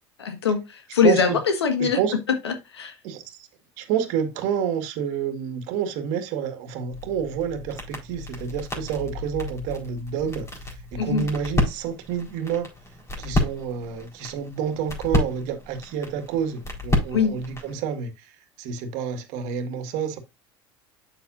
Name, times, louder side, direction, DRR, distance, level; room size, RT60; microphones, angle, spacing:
voice 1, 0.2-2.0 2.3-3.0 11.0-11.3 17.1-17.4, left 5 dB, 85° left, 1.6 m, -22 dB
voice 2, 1.0-1.4 1.8-2.1 3.0-3.5 3.8-12.7 13.2-18.3 18.6-20.2, right 8 dB, 60° right, 1.9 m, -29 dB
sound 1, 6.9-17.8, left 1 dB, 20° left, 4.4 m, -30 dB
8.5 x 7.2 x 2.6 m
hypercardioid pair, 80°, 14 cm